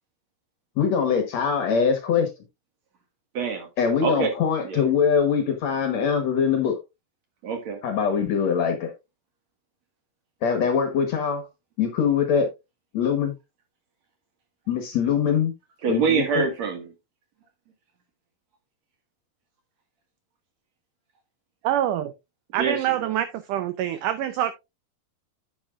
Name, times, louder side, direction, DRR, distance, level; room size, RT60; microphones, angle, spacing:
voice 1, 0.8-2.3 3.8-6.8 7.8-8.9 10.4-11.5 11.8-12.5 12.9-13.3 14.7-15.5 15.9-16.5, left 6 dB, 60° left, 2.0 m, -23 dB
voice 2, 3.3-3.7 4.0-4.3 4.6-4.8 7.4-7.8 15.8-16.9 22.6-22.8, right 5 dB, 55° right, 2.6 m, -25 dB
voice 3, 21.6-22.1 22.5-24.5, right 11 dB, 80° right, 1.9 m, -25 dB
10.5 x 8.3 x 2.4 m
omnidirectional pair, 4.3 m